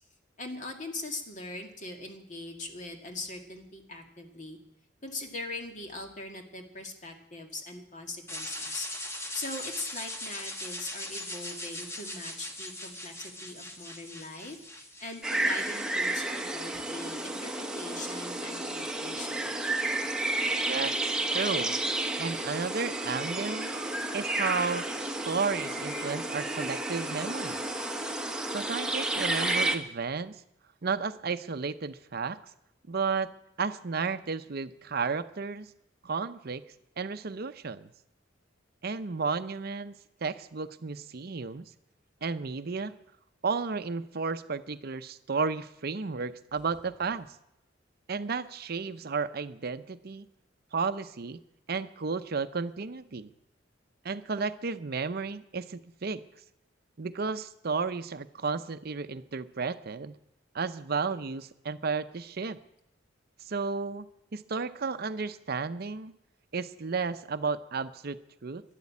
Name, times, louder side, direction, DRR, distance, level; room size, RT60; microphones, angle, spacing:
voice 1, 0.4-4.6 5.0-8.9 9.3-19.5, left 2 dB, 40° left, 4 dB, 2.0 m, -41 dB
sound 1, 8.3-16.3, left 1 dB, 15° left, 1.3 m, -40 dB
sound 2, 15.2-29.8, right 2 dB, 5° right, 1.1 m, -31 dB
voice 2, 20.7-21.8 22.2-23.7 24.1-27.6 28.5-30.4 30.8-32.4 32.9-33.3 33.6-35.7 36.0-36.6 37.0-37.9 38.8-39.9 40.2-41.7 42.2-42.9 43.4-47.3 48.1-50.3 50.7-51.4 51.7-53.3 54.0-56.2 57.0-60.2 60.5-62.6 63.4-64.1 64.3-66.1 66.5-68.6, right 4 dB, 55° right, 11 dB, 0.6 m, -33 dB
12.5 x 11.0 x 8.5 m, 0.83 s
head